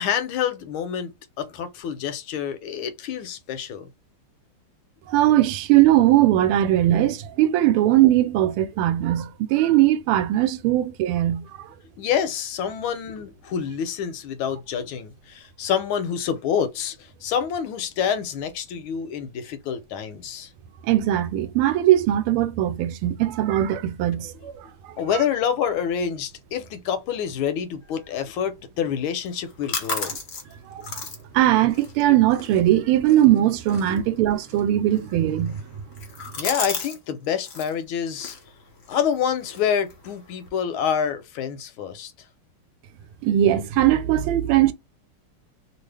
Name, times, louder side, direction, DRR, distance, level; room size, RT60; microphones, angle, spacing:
voice 1, 0.0-3.9 12.0-20.5 25.0-30.1 33.9-34.0 36.4-38.3 38.9-42.1, left 8 dB, 80° left, 1.5 m, -27 dB
voice 2, 5.1-11.7 20.9-24.5 31.3-35.6 43.2-44.7, right 13 dB, 90° right, 1.5 m, -20 dB
sound 1, 29.3-37.0 37.2-37.7 38.2-40.5, left 4 dB, 60° left, 0.7 m, -36 dB
3.3 x 2.4 x 3.2 m
omnidirectional pair, 2.3 m